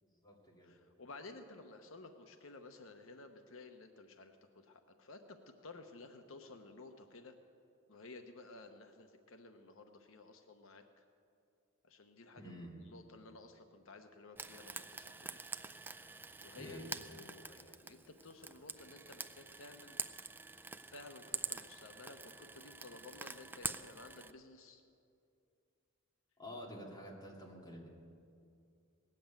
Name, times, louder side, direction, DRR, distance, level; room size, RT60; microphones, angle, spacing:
voice 1, 0.0-0.7 12.4-12.7 16.6-16.9 26.4-27.9, equal, 20° left, -3 dB, 2.5 m, -49 dB
voice 2, 0.6-7.4 7.9-11.0 11.8-15.4 15.7-20.0 20.8-24.8, left 3 dB, 80° left, 6 dB, 0.9 m, -54 dB
Frying (food), 14.4-24.3, right 4 dB, 10° right, 0.3 m, -46 dB
18.5 x 7.7 x 8.9 m, 2.5 s
head